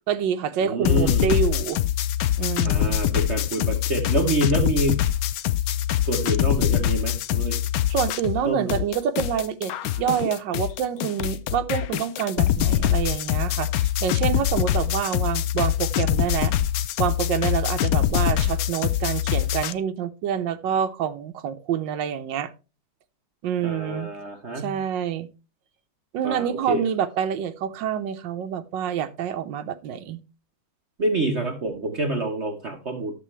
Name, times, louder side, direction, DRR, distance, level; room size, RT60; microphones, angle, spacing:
voice 1, 0.1-1.8 2.4-3.0 7.9-16.5 17.0-22.5 23.4-24.1 24.6-25.3 26.1-30.2, right 8 dB, 75° right, 8 dB, 1.4 m, -27 dB
voice 2, 0.6-1.3 2.6-5.0 6.0-7.6 8.4-8.7 23.6-24.8 26.2-26.8 31.0-33.1, right 2 dB, 45° right, 3 dB, 1.0 m, -27 dB
sound 1, 0.8-8.4 8.7-19.7, left 12 dB, 90° left, 0.7 m, -24 dB
11.0 x 6.8 x 3.2 m, 0.31 s
omnidirectional pair, 2.1 m